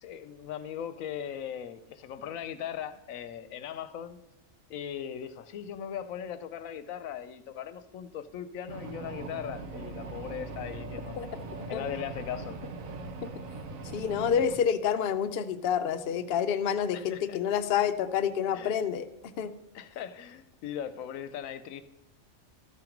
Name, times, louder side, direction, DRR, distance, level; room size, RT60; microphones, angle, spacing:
voice 1, 0.0-4.2 4.7-11.3 11.7-12.6 16.9-17.4 18.5-18.7 19.7-21.8, left 9 dB, 80° left, 12 dB, 1.0 m, -39 dB
sound 1, 8.7-14.6, right 3 dB, 75° right, 1.3 m, -40 dB
voice 2, 13.9-19.0 19.4-19.5, left 8 dB, 60° left, 9 dB, 0.6 m, -28 dB
13.0 x 5.9 x 5.0 m, 0.97 s
omnidirectional pair, 1.4 m